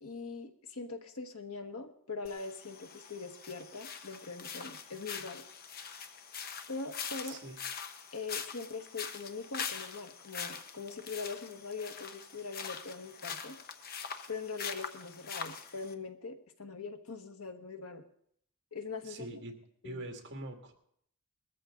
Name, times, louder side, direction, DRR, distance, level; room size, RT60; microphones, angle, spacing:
voice 1, 0.0-5.4 6.7-7.4 8.1-13.6 14.3-18.0 18.7-19.4 19.8-20.0, left 4 dB, 75° left, 6 dB, 1.4 m, -42 dB
sound 1, 2.2-15.9, left 6 dB, 45° left, 1.0 m, -43 dB
voice 2, 7.2-7.6 19.0-19.5 19.8-20.7, right 1 dB, 55° right, 3 dB, 2.3 m, -43 dB
20.5 x 13.5 x 3.9 m, 0.68 s
head